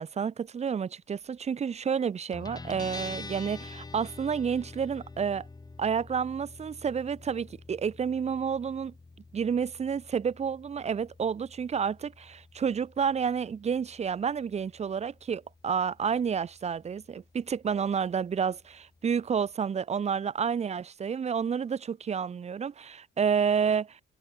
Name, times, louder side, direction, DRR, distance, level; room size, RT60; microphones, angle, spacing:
voice 1, 0.0-5.4 5.8-8.9 9.3-24.0, right 7 dB, 35° right, 0.6 m, -30 dB
Guitar, 2.3-19.5, left 3 dB, 20° left, 1.2 m, -48 dB
cardioid pair, 90°, 20 cm